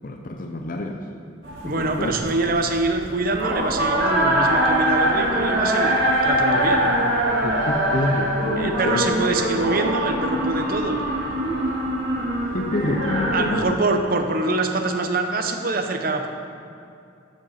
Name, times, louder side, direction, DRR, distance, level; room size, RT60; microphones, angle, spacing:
voice 1, 0.0-1.1 1.6-2.1 7.4-9.1 12.5-13.8, left 2 dB, 45° left, 3 dB, 0.6 m, -27 dB
sound 1, 1.4-13.6, right 1 dB, 75° right, 2.5 m, -23 dB
voice 2, 1.6-6.9 8.6-11.0 13.3-16.3, right 2 dB, 50° right, 5 dB, 0.8 m, -24 dB
12.5 x 5.2 x 5.7 m, 2.5 s
head